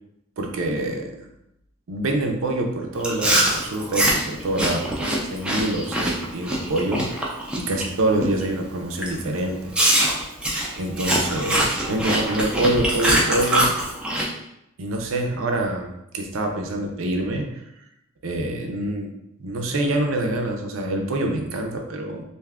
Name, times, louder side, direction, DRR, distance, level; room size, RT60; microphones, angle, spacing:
voice 1, 0.4-1.3 1.9-7.2 7.5-9.7 10.8-13.7 14.8-17.6 18.2-19.1 19.4-22.2, right 1 dB, 75° right, 2 dB, 0.5 m, -26 dB
Chewing mastication, 3.0-7.9 8.2-8.5 9.0-9.1 9.7-14.3, right 1 dB, 5° right, 0.3 m, -23 dB
2.6 x 2.3 x 3.4 m, 0.81 s
head